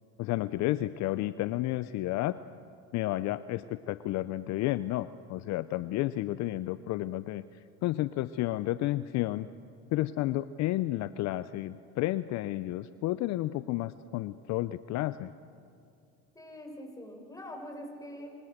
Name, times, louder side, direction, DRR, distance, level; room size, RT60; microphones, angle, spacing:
voice 1, 0.2-2.3 2.9-7.4 7.8-9.5 9.9-15.3, left 16 dB, 60° left, 14 dB, 0.7 m, -31 dB
voice 2, 16.3-18.3, equal, 10° left, 2 dB, 6.6 m, -44 dB
26.5 x 26.0 x 6.6 m, 2.5 s
supercardioid pair, 85°, 32 cm